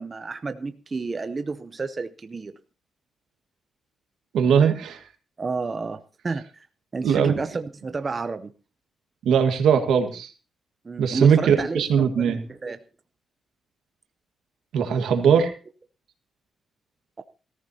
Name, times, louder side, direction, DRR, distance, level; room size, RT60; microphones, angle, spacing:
voice 1, 0.0-2.5 5.4-6.7 6.9-8.5 10.8-12.8 17.2-17.3, right 4 dB, 25° right, 10 dB, 0.6 m, -31 dB
voice 2, 4.3-5.0 7.0-7.4 9.2-10.3 11.0-12.4 14.7-15.5, right 7 dB, 85° right, 7 dB, 1.6 m, -20 dB
18.0 x 14.0 x 2.8 m, 0.34 s
cardioid pair, 135°, 0 cm